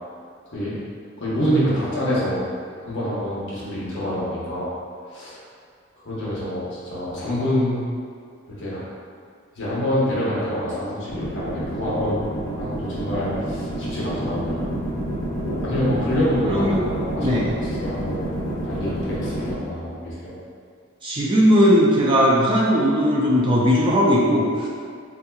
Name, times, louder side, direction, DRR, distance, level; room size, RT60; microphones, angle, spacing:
voice 1, 1.2-2.4 2.8-4.7 5.1-5.4 6.0-7.8 8.5-8.9 9.5-12.2 12.5-14.7 15.4-18.4 18.6-20.3, equal, 55° left, -8 dB, 1.0 m, -26 dB
sound 1, 11.1-19.5, right 1 dB, 75° left, 0.6 m, -28 dB
voice 2, 16.5-16.8 17.2-17.4 21.0-24.7, equal, 25° right, -4 dB, 0.3 m, -18 dB
3.6 x 2.8 x 2.3 m, 2.2 s
head